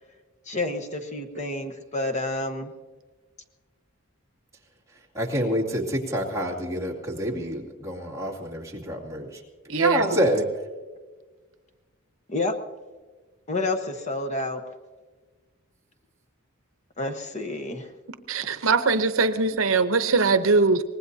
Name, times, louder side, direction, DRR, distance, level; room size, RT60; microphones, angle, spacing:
voice 1, 0.5-2.7 12.3-12.5 13.5-14.6 17.0-17.9, left 2 dB, 35° left, 6 dB, 1.1 m, -29 dB
voice 2, 5.1-9.4 9.7-10.4, equal, 15° right, -2 dB, 2.4 m, -27 dB
voice 3, 9.7-10.2 18.3-20.8, right 4 dB, 70° right, 10 dB, 0.8 m, -21 dB
24.0 x 19.5 x 2.8 m, 1.4 s
head